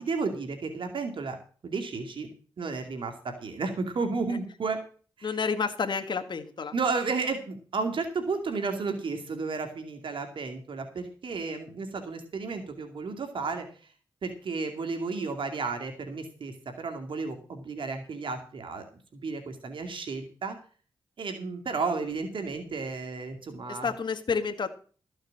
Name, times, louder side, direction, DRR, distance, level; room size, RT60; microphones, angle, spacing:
voice 1, 0.0-1.4 1.6-2.3 2.6-4.8 5.2-5.3 6.7-13.7 14.2-18.8 19.1-20.6 21.2-23.9, right 4 dB, 70° right, 5 dB, 2.4 m, -32 dB
voice 2, 5.2-6.7 23.7-24.7, left 5 dB, 60° left, 6 dB, 1.6 m, -30 dB
14.0 x 6.5 x 7.6 m, 0.40 s
cardioid pair, 55°, 9 cm